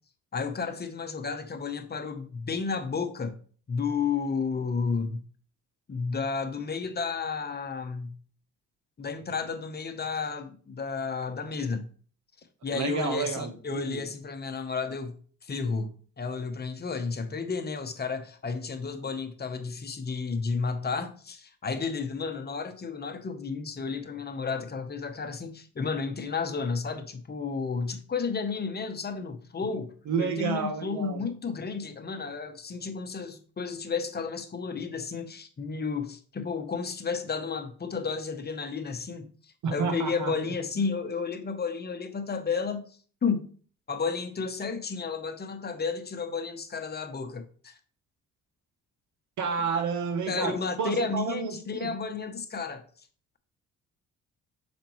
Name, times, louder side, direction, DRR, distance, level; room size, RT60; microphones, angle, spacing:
voice 1, 0.3-3.4 3.7-5.2 5.9-8.1 9.0-11.9 12.6-15.1 15.4-39.3 39.7-42.8 43.2-43.4 43.9-47.7 50.3-52.8, left 5 dB, 35° left, 1.0 m, -32 dB
voice 2, 12.7-14.0 30.1-31.2 39.6-40.3 49.4-51.9, right 5 dB, 75° right, 1.0 m, -30 dB
6.6 x 5.2 x 3.1 m
cardioid pair, 90°, 30 cm